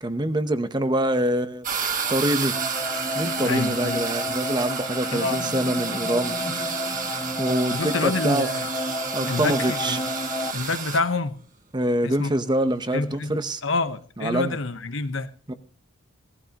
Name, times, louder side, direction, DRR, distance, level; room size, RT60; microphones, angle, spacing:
voice 1, 0.0-1.6 2.1-2.6 3.2-6.8 7.1-8.5 9.1-10.0 11.7-13.6 14.2-14.6 15.5-15.6, right 1 dB, 20° right, 0.8 m, -25 dB
sound 1, 1.6-11.0, right 6 dB, 40° right, 1.6 m, -30 dB
sound 2, 2.5-10.5, left 2 dB, 20° left, 0.7 m, -31 dB
voice 2, 3.4-4.0 5.1-5.6 7.7-8.7 9.3-10.0 10.5-11.3 12.0-12.3 12.9-15.3, left 3 dB, 70° left, 1.0 m, -27 dB
18.0 x 14.0 x 2.9 m
head